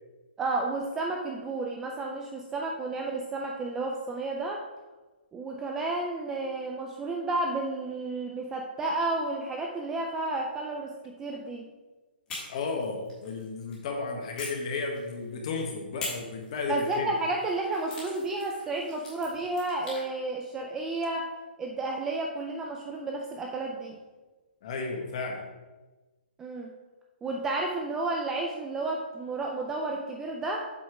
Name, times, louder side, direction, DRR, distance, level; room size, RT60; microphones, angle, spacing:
voice 1, 0.4-4.6 5.3-11.7 16.7-21.3 21.6-24.0 26.4-26.7 27.2-30.7, right 2 dB, 5° right, 0 dB, 0.3 m, -32 dB
sound 1, 12.3-13.8 14.4-15.4 16.0-20.0, left 2 dB, 10° left, 1.8 m, -43 dB
voice 2, 12.5-17.1 24.6-25.4, left 3 dB, 35° left, 2 dB, 1.3 m, -33 dB
7.6 x 4.3 x 4.7 m, 1.2 s
hypercardioid pair, 170°, 6 cm